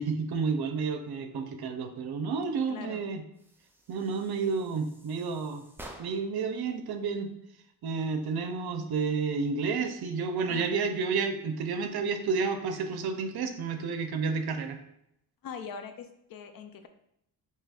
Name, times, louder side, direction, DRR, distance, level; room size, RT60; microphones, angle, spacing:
voice 1, 0.0-3.2 3.9-5.6 6.0-7.3 7.8-14.8, right 5 dB, 70° right, 7 dB, 0.6 m, -30 dB
voice 2, 2.7-3.0 10.5-10.7 12.7-12.8 15.4-16.9, left 6 dB, 60° left, 8 dB, 0.5 m, -42 dB
sound 1, 3.3-6.4, right 1 dB, 5° right, 0.3 m, -51 dB
4.9 x 2.8 x 2.3 m, 0.78 s
wide cardioid pair, 110°, 39 cm